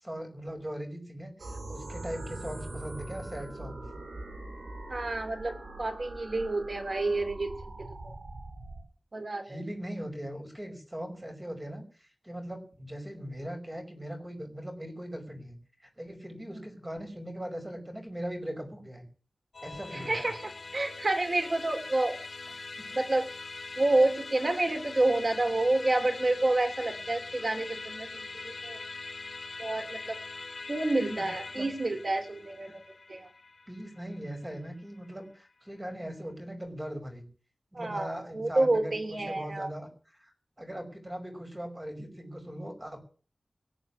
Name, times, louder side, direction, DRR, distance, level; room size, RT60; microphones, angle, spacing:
voice 1, 0.0-3.8 9.4-15.6 16.0-19.1 19.6-20.3 22.7-22.8 31.0-31.3 31.5-31.7 32.7-32.8 33.7-37.3 37.7-40.3 40.6-43.0, equal, 20° right, 5 dB, 5.7 m, -40 dB
sound 1, 1.4-8.8, right 2 dB, 80° right, 6.6 m, -42 dB
voice 2, 4.9-7.5 7.8-8.1 9.1-9.6 16.5-16.6 20.1-22.2 22.9-23.3 23.8-28.8 29.6-30.2 30.7-32.8 33.1-33.3 37.7-39.7, right 2 dB, 50° right, 6 dB, 3.3 m, -29 dB
Musical instrument, 19.5-35.1, left 3 dB, 60° left, 2.8 m, -42 dB
19.5 x 6.9 x 9.8 m, 0.40 s
wide cardioid pair, 90°, 0 cm